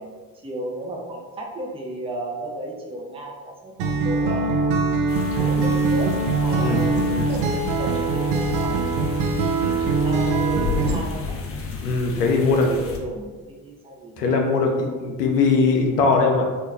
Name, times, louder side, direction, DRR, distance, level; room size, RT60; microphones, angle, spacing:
voice 1, 0.0-4.7 5.4-9.1 10.0-11.4 12.4-14.3, right 1 dB, 10° right, -1 dB, 0.6 m, -34 dB
Acoustic guitar, 3.8-11.0, right 3 dB, 75° right, 0.5 m, -22 dB
sound 1, 5.1-13.0, left 5 dB, 30° left, 0.5 m, -33 dB
voice 2, 11.8-12.8 14.2-16.5, left 4 dB, 90° left, 2 dB, 0.5 m, -20 dB
3.0 x 2.3 x 3.3 m, 1.4 s
hypercardioid pair, 50°, 46 cm